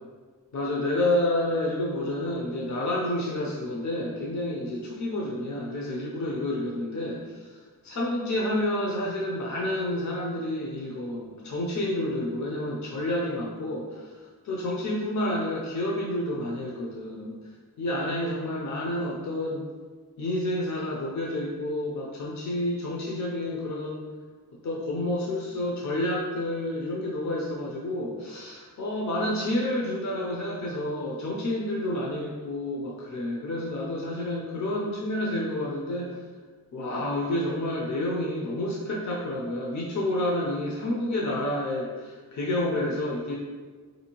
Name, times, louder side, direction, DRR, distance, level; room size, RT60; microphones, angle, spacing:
voice 1, 0.5-7.6 7.8-14.2 14.4-17.4 17.8-19.6 20.2-24.1 24.6-36.2 36.7-43.4, left 1 dB, 60° left, -3 dB, 0.5 m, -29 dB
3.6 x 2.7 x 2.9 m, 1.4 s
wide cardioid pair, 100°, 33 cm